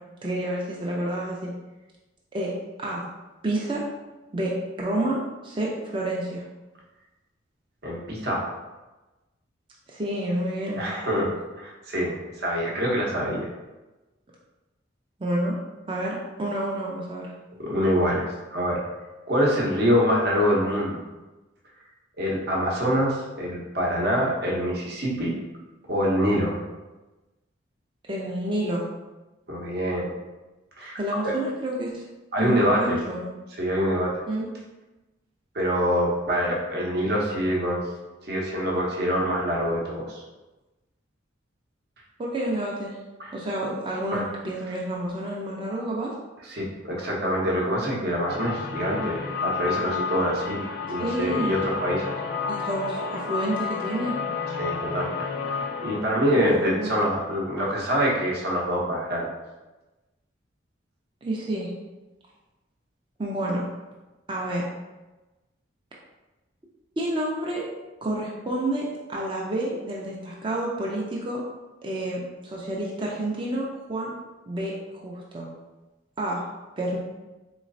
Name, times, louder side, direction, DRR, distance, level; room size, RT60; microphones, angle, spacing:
voice 1, 0.2-1.5 2.3-2.5 2.8-3.0 3.4-3.8 4.3-5.2 5.4-6.4 9.9-10.8 15.2-15.6 15.9-17.3 28.1-28.9 31.0-32.0 32.4-33.3 34.3-34.5 42.2-43.0 43.3-46.1 51.0-51.6 52.5-54.2 56.3-57.0 61.2-61.7 63.2-63.6 64.3-64.6 67.0-67.7 68.0-71.4 71.8-74.1 74.5-75.5 76.2-76.5 76.8-77.0, right 1 dB, 25° right, -4 dB, 0.4 m, -29 dB
voice 2, 7.8-8.5 10.8-13.5 17.6-18.8 19.3-21.0 22.2-25.4 25.9-26.6 29.5-30.1 30.8-31.3 32.3-33.0 33.6-34.2 35.5-37.8 38.3-40.2 43.2-43.3 44.1-44.2 46.4-50.6 50.9-52.1 54.6-59.3, equal, 55° right, -3 dB, 0.7 m, -25 dB
sound 1, 48.3-58.0, left 5 dB, 50° left, 0.5 m, -31 dB
3.9 x 3.0 x 2.6 m, 1.1 s
head